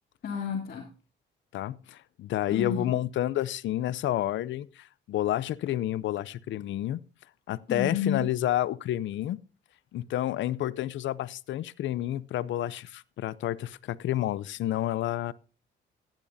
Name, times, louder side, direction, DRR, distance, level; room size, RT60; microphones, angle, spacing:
voice 1, 0.2-0.9 2.5-3.0 7.7-8.3, left 7 dB, 55° left, 2.8 m, -31 dB
voice 2, 1.5-7.0 7.5-9.4 9.9-15.3, left 13 dB, 70° left, 0.6 m, -30 dB
15.0 x 10.5 x 2.7 m
cardioid pair, 90°, 20 cm